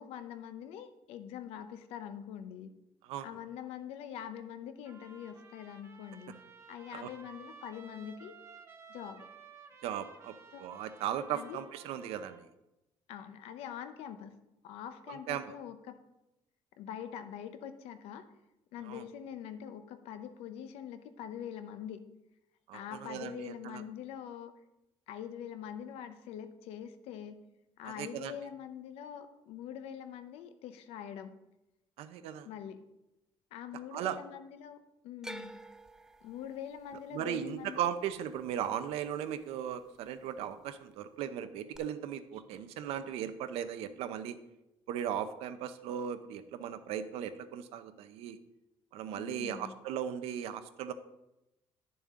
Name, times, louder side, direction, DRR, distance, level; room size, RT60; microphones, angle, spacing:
voice 1, 0.0-2.7 3.2-6.4 6.7-8.4 8.9-9.3 10.5-10.6 11.3-11.6 13.1-14.4 14.6-16.0 16.8-18.2 18.7-22.0 22.7-24.5 25.1-27.4 27.8-31.4 32.4-32.9 33.5-34.8 35.0-35.6 36.2-37.8 49.2-49.7, left 9 dB, 85° left, 10 dB, 0.8 m, -44 dB
Trumpet, 4.8-12.4, right 5 dB, 25° right, 1.0 m, -55 dB
voice 2, 9.8-10.3 10.6-12.5 15.1-15.5 18.9-19.0 22.7-23.8 27.8-28.3 32.0-32.5 33.9-34.2 37.1-44.4 44.9-48.4 48.9-50.9, right 9 dB, 80° right, 11 dB, 0.6 m, -37 dB
sound 1, 35.2-39.4 39.7-40.4 41.7-41.8, right 1 dB, 5° right, 0.3 m, -50 dB
10.5 x 7.0 x 3.7 m, 0.94 s
cardioid pair, 145°, 10 cm